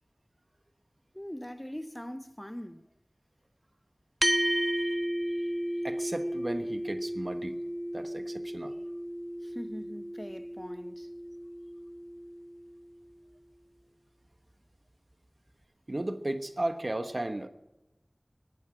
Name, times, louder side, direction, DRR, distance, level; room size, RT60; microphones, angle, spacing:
voice 1, 1.1-2.9 9.4-11.1, equal, 10° left, 0.8 m, -41 dB
sound 1, 4.2-12.9, equal, 20° right, 0.5 m, -33 dB
voice 2, 5.8-7.5 7.9-8.7 15.9-17.5, right 1 dB, 50° right, 1.3 m, -34 dB
22.0 x 9.1 x 6.2 m
wide cardioid pair, 45°, 0 cm